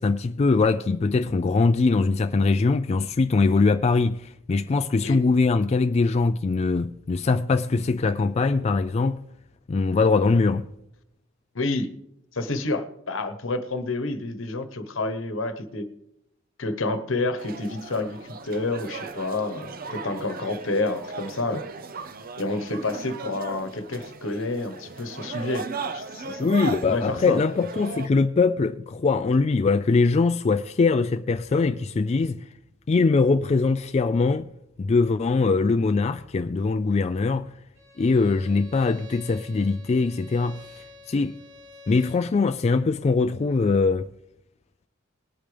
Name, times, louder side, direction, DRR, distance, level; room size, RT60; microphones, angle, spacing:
voice 1, 0.0-9.2 9.7-10.7 26.4-32.4 32.9-34.5 34.8-37.5 38.0-41.4 41.9-44.1, left 4 dB, 30° left, 0.3 m, -22 dB
voice 2, 11.5-11.9 12.3-15.9 16.6-21.7 22.4-26.5 26.8-27.4, left 2 dB, 70° left, 1.1 m, -29 dB
sound 1, 17.4-28.1, right 4 dB, 45° right, 0.7 m, -37 dB
Bowed string instrument, 37.7-42.3, left 2 dB, 65° right, 2.5 m, -48 dB
20.0 x 8.7 x 3.4 m
head